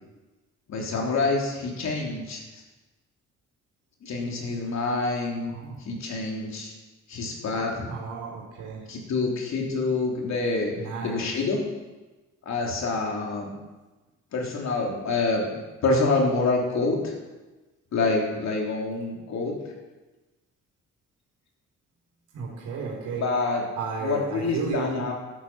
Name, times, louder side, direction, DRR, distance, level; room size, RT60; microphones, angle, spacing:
voice 1, 0.7-2.4 4.0-5.6 5.9-6.7 7.1-7.9 8.9-10.7 11.0-11.6 12.5-13.5 14.3-15.5 15.8-17.1 17.9-19.5 23.2-23.6 24.0-25.1, left 3 dB, 65° left, -1 dB, 3.5 m, -26 dB
voice 2, 5.4-5.8 7.9-8.9 10.7-11.3 22.3-23.3 23.5-25.1, right 5 dB, 90° right, -3 dB, 4.0 m, -33 dB
12.0 x 9.8 x 6.3 m, 1.2 s
cardioid pair, 90°, 30 cm